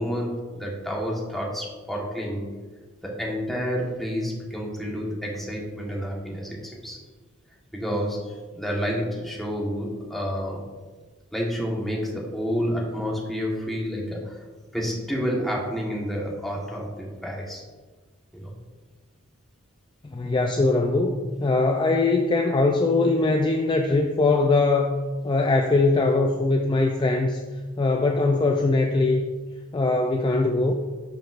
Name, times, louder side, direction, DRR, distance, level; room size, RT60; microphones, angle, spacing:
voice 1, 0.0-2.5 3.0-7.0 7.7-10.6 11.3-14.4 14.7-17.6 18.3-18.5, equal, ahead, -3 dB, 1.3 m, -29 dB
voice 2, 20.1-25.0 25.2-27.4 27.8-29.2 29.7-30.7, left 3 dB, 25° left, 4 dB, 0.3 m, -21 dB
12.0 x 5.2 x 2.5 m, 1.4 s
head